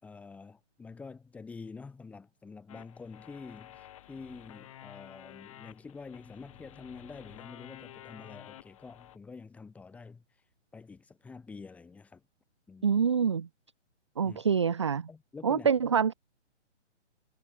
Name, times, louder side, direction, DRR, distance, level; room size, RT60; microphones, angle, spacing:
voice 1, 0.0-10.2 10.7-12.2 12.7-12.9 14.2-14.4 15.1-15.7, left 4 dB, 5° left, 4.5 m, -47 dB
sound 1, 2.7-9.2, left 13 dB, 25° left, 6.3 m, -51 dB
voice 2, 12.8-13.5 14.2-15.1 15.4-16.1, right 6 dB, 25° right, 0.7 m, -26 dB
hypercardioid pair, 170°, 36 cm